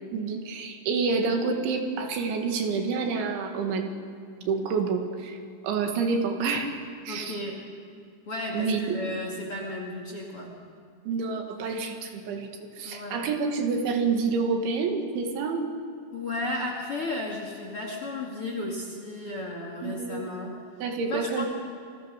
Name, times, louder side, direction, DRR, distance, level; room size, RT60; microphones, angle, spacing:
voice 1, 0.1-3.9 4.5-5.4 5.6-7.4 8.5-9.0 11.1-15.6 19.8-20.3 20.8-21.5, right 4 dB, 75° right, 4 dB, 4.3 m, -28 dB
voice 2, 7.1-7.6 8.3-10.5 12.8-13.3 16.1-20.6 21.0-21.5, left 2 dB, 40° left, 1 dB, 2.4 m, -34 dB
29.5 x 21.5 x 6.6 m, 2.4 s
omnidirectional pair, 5.5 m